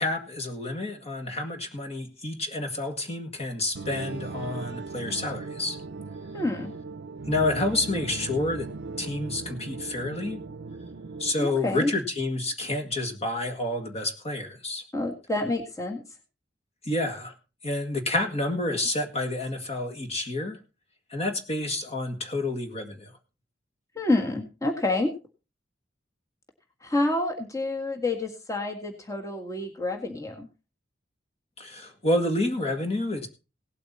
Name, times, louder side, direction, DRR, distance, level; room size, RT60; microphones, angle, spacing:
voice 1, 0.0-5.8 7.3-8.7 9.0-10.4 11.2-14.8 16.9-17.3 17.6-20.6 21.1-23.1 31.6-33.3, left 2 dB, 35° left, 5 dB, 1.9 m, -29 dB
sound 1, 3.7-11.3, right 3 dB, 65° right, 0.6 m, -38 dB
voice 2, 6.3-6.7 11.4-11.9 14.9-16.0 24.0-25.1 26.8-30.5, left 2 dB, 20° left, 3 dB, 1.8 m, -28 dB
17.5 x 8.4 x 4.2 m, 0.32 s
head